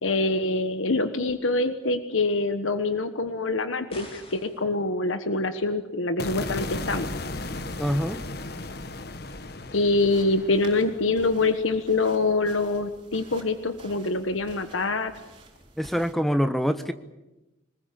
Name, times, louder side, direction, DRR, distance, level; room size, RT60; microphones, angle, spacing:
voice 1, 0.0-7.1 9.7-15.1, left 3 dB, 90° left, 9 dB, 1.4 m, -25 dB
sound 1, 3.9-4.6, left 1 dB, 30° left, 4.5 m, -44 dB
sound 2, 6.2-12.4, left 2 dB, 50° left, 1.3 m, -36 dB
voice 2, 7.8-8.2 15.8-16.9, equal, ahead, 10 dB, 1.1 m, -25 dB
sound 3, 10.0-16.1, right 2 dB, 25° right, 5.3 m, -50 dB
26.0 x 20.5 x 8.7 m, 1.0 s
head